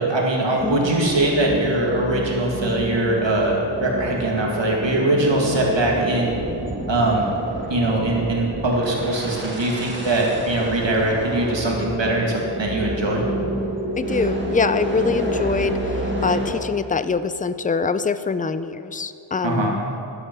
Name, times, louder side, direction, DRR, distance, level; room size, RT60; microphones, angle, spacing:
voice 1, 0.0-6.4 6.9-7.3 7.7-13.2 19.4-19.8, right 2 dB, 65° right, -2 dB, 2.0 m, -21 dB
sound 1, 0.6-16.5, equal, 20° right, 1.8 m, -29 dB
voice 2, 14.0-19.8, left 5 dB, 20° left, 13 dB, 0.3 m, -24 dB
12.5 x 8.0 x 6.0 m, 2.7 s
wide cardioid pair, 90°, 48 cm